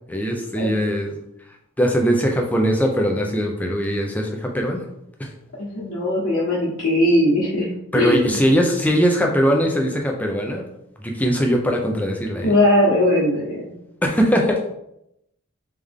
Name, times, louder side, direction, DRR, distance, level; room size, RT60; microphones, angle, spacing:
voice 1, 0.1-1.2 1.8-4.8 5.2-5.3 7.9-10.6 11.0-12.5 14.0-14.6, equal, 5° left, 1 dB, 0.5 m, -20 dB
voice 2, 5.6-7.7 7.9-8.4 12.4-13.6, left 1 dB, 70° left, -9 dB, 1.3 m, -19 dB
3.5 x 3.3 x 3.6 m, 0.81 s
head